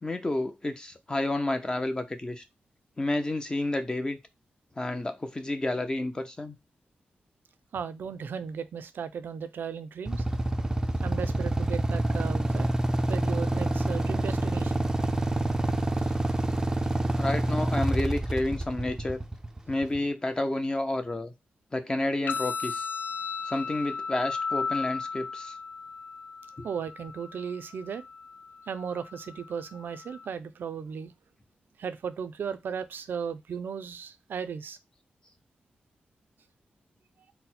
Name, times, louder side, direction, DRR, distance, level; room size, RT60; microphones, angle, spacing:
voice 1, 0.0-2.4 3.0-4.2 4.8-6.6 17.2-19.2 19.7-21.3 21.7-22.9 23.4-25.5, left 2 dB, 25° left, 0.6 m, -30 dB
voice 2, 7.7-10.2 11.0-12.7 13.1-14.9 16.0-16.4 26.6-28.0 28.7-31.1 31.8-34.8, right 7 dB, 85° right, 0.5 m, -36 dB
Motorcycle / Idling, 10.1-20.0, right 1 dB, 15° right, 0.5 m, -27 dB
sound 1, 22.3-30.3, left 5 dB, 75° left, 0.5 m, -36 dB
4.1 x 2.1 x 4.1 m
wide cardioid pair, 105°, 3 cm